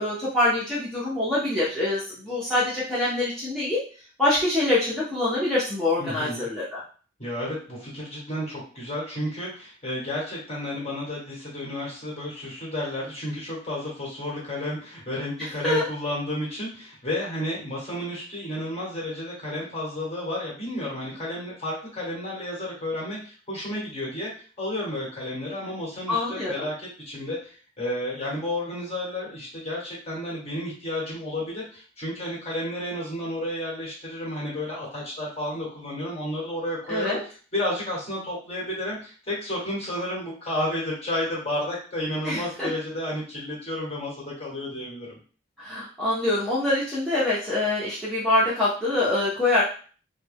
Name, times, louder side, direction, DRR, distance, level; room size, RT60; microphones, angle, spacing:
voice 1, 0.0-3.8 4.2-6.8 15.6-15.9 26.1-26.7 36.9-37.2 42.2-42.7 45.6-49.6, left 2 dB, ahead, -10 dB, 0.7 m, -25 dB
voice 2, 6.0-6.4 7.2-24.3 24.6-37.2 37.5-45.2, left 1 dB, 30° left, -5 dB, 1.5 m, -32 dB
3.2 x 2.2 x 3.4 m, 0.40 s
head